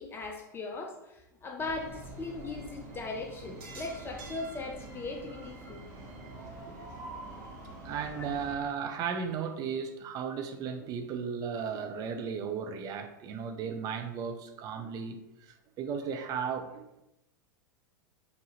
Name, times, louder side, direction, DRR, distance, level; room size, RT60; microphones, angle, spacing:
voice 1, 0.0-6.2 7.4-7.5 8.2-8.3, left 3 dB, 20° left, 1 dB, 0.5 m, -39 dB
sound 1, 1.6-8.6, right 2 dB, 55° right, 1.0 m, -45 dB
voice 2, 7.8-17.0, right 6 dB, 35° right, 6 dB, 0.5 m, -35 dB
4.6 x 2.6 x 3.0 m, 0.89 s
figure-of-eight pair, 95°, 11 cm